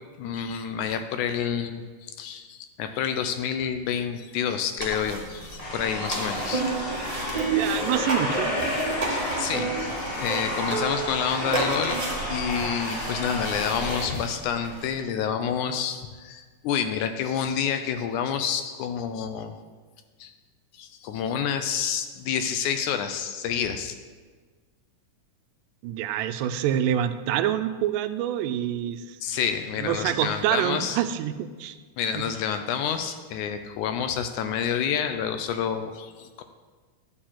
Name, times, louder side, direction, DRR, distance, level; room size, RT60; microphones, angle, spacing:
voice 1, 0.2-6.6 9.1-12.0 12.3-19.6 20.2-20.3 20.7-23.9 29.2-31.0 32.0-36.4, left 8 dB, 80° left, 8 dB, 1.9 m, -29 dB
Shuffling with a ukulele, 4.8-14.9, right 3 dB, 40° right, 0.5 m, -32 dB
sound 1, 5.6-14.0, left 1 dB, 60° left, 4.7 m, -31 dB
voice 2, 7.6-8.9 25.8-29.2 29.8-31.8 32.1-32.2, right 10 dB, 85° right, 10 dB, 2.2 m, -27 dB
11.0 x 4.7 x 7.4 m, 1.4 s
omnidirectional pair, 3.8 m